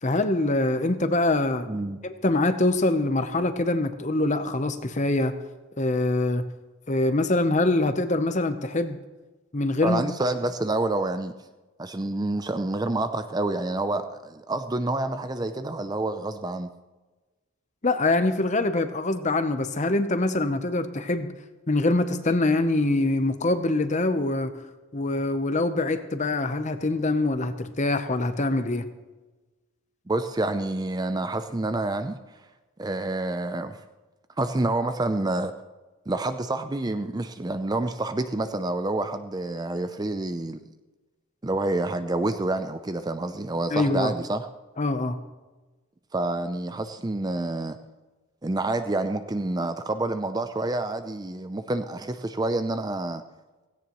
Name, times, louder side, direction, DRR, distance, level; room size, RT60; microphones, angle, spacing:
voice 1, 0.0-1.7 2.0-5.3 5.8-6.4 6.9-9.0 9.5-10.0 17.8-21.3 21.7-24.5 24.9-28.9 43.7-44.1 44.8-45.2, left 2 dB, 35° left, 10 dB, 0.8 m, -24 dB
voice 2, 1.7-2.0 9.8-11.3 11.8-16.7 30.1-32.2 32.8-33.8 34.4-35.5 36.1-40.6 41.4-44.5 46.1-47.8 48.4-53.2, right 2 dB, 20° right, 9 dB, 0.4 m, -28 dB
17.0 x 16.5 x 3.1 m, 1.2 s
head